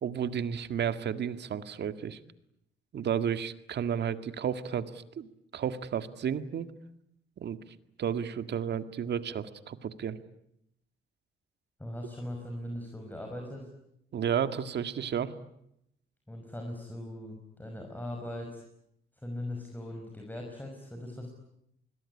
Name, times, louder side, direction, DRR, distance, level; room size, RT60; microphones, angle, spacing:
voice 1, 0.0-2.2 2.9-4.9 5.2-6.7 7.4-7.6 8.0-10.2 14.1-15.3, right 8 dB, 60° right, 10 dB, 1.9 m, -32 dB
voice 2, 11.8-13.7 16.3-18.6 19.2-21.3, left 1 dB, 10° left, 2 dB, 5.9 m, -40 dB
27.5 x 21.5 x 9.9 m, 0.78 s
cardioid pair, 90°, 20 cm